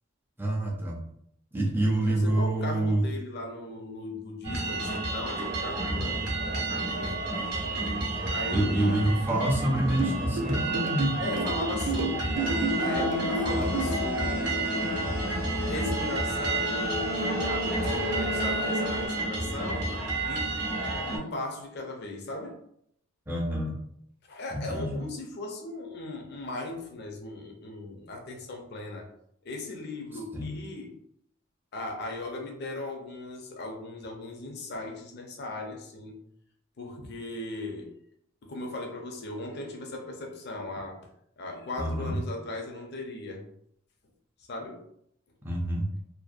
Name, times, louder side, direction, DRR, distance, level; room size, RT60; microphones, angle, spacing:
voice 1, 0.4-1.0 1.5-3.1 8.5-11.2 23.3-23.8 24.5-25.1 30.3-30.5 41.8-42.2 45.4-45.9, right 1 dB, 10° right, -1 dB, 0.4 m, -27 dB
voice 2, 1.8-7.2 8.3-8.9 11.2-15.1 15.7-19.9 20.3-20.6 21.0-22.6 24.3-29.1 29.4-30.9 31.7-36.2 36.8-37.9 38.4-41.0 41.4-43.5 44.5-44.8, left 2 dB, 50° left, 2 dB, 0.5 m, -38 dB
sound 1, 4.4-21.2, right 2 dB, 50° right, 0.7 m, -30 dB
sound 2, 10.0-14.0, right 3 dB, 85° right, 0.5 m, -31 dB
sound 3, 12.3-19.1, left 1 dB, 85° left, 0.9 m, -33 dB
2.5 x 2.1 x 2.4 m, 0.72 s
head